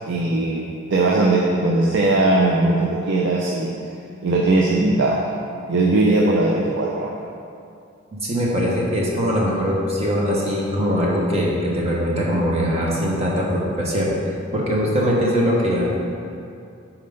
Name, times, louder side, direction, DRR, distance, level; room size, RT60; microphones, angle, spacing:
voice 1, 0.1-3.7 4.2-5.4 5.7-7.1, right 2 dB, 65° right, -2 dB, 0.5 m, -19 dB
voice 2, 8.2-16.1, equal, 35° right, -4 dB, 1.1 m, -21 dB
5.6 x 4.4 x 5.1 m, 2.5 s
head